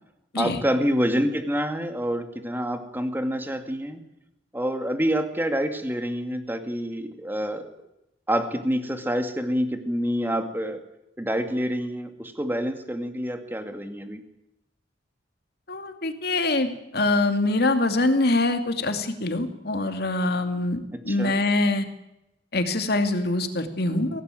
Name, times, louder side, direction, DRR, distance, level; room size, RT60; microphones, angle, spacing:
voice 1, 0.4-4.0 4.5-7.7 8.3-10.8 11.2-14.2 21.1-21.4, equal, 10° right, 7 dB, 2.3 m, -27 dB
voice 2, 15.7-21.9 22.5-24.2, left 2 dB, 60° left, 7 dB, 2.6 m, -24 dB
23.5 x 17.5 x 9.2 m, 0.90 s
head